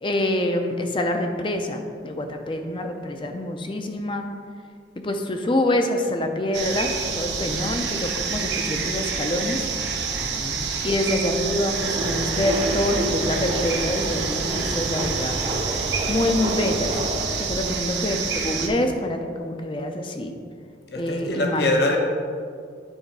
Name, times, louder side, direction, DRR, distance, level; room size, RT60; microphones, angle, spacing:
voice 1, 0.0-4.3 5.0-9.7 10.8-15.4 16.1-17.0 17.4-20.3 21.0-21.7, left 1 dB, 30° left, 5 dB, 0.6 m, -26 dB
sound 1, 6.5-18.7, right 5 dB, 80° right, 0.9 m, -28 dB
voice 2, 10.2-10.6 20.9-22.0, left 2 dB, 65° left, 1 dB, 1.0 m, -24 dB
sound 2, 11.7-17.3, right 1 dB, 30° right, 0.8 m, -29 dB
9.0 x 3.9 x 4.6 m, 2.2 s
head